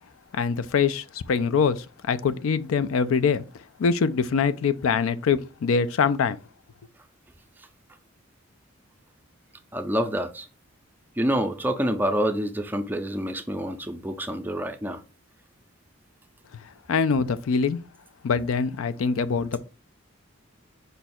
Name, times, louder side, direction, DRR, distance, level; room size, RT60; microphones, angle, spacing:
voice 1, 0.3-6.4 16.9-17.8 18.2-19.6, left 5 dB, 80° left, 0.4 m, -24 dB
voice 2, 9.7-10.5 11.2-15.0, equal, 10° right, 0.4 m, -27 dB
5.3 x 2.3 x 4.2 m
head